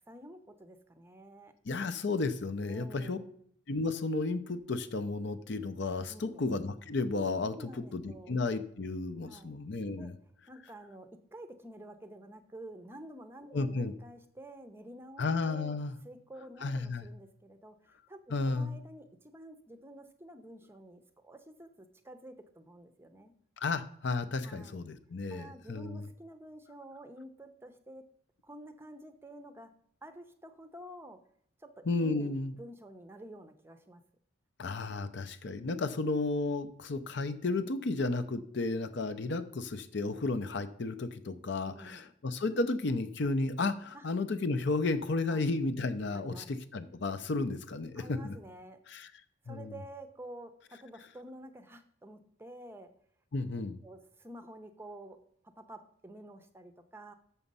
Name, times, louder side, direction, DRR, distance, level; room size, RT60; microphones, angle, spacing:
voice 1, 0.1-1.5 2.7-3.4 6.1-6.4 7.5-8.3 9.2-9.5 10.0-10.1 10.5-23.3 24.4-24.9 25.3-28.0 28.4-29.7 30.0-31.2 31.6-34.0 41.6-42.1 43.9-44.1 45.3-45.4 46.1-46.5 47.9-48.8 49.4-52.9 53.8-55.2 55.4-57.1, right 1 dB, 10° right, 9 dB, 0.6 m, -50 dB
voice 2, 1.7-3.2 3.7-10.2 13.5-13.9 15.2-15.9 16.6-17.1 18.3-18.8 23.6-26.1 31.9-32.5 34.6-48.3 48.9-49.1 49.5-49.7 53.3-53.7, left 3 dB, 55° left, 11 dB, 0.6 m, -33 dB
7.0 x 6.3 x 5.4 m, 0.64 s
head